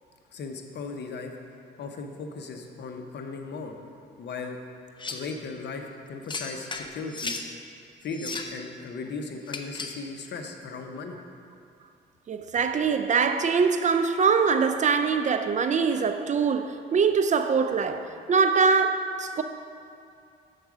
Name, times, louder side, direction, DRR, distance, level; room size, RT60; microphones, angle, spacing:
voice 1, 0.3-1.3 1.8-3.7 4.2-4.6 5.1-7.4 8.0-11.2, left 4 dB, 60° left, 0.8 m, -37 dB
sound 1, 5.0-5.3 6.3-7.5 8.1-8.6 9.5-10.0, left 3 dB, 25° left, 0.5 m, -35 dB
voice 2, 12.3-19.4, right 5 dB, 40° right, 0.4 m, -23 dB
6.5 x 4.6 x 6.0 m
cardioid pair, 90°, 20 cm